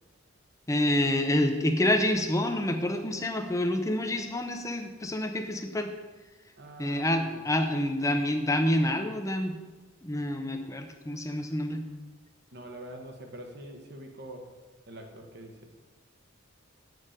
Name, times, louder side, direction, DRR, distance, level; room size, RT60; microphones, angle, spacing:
voice 1, 0.7-5.9 6.8-9.5 10.0-11.8, left 1 dB, 15° left, 6 dB, 0.7 m, -27 dB
voice 2, 6.6-7.4 12.5-14.6 14.9-15.7, right 1 dB, 55° right, 4 dB, 1.2 m, -45 dB
8.8 x 6.5 x 5.1 m, 1.2 s
head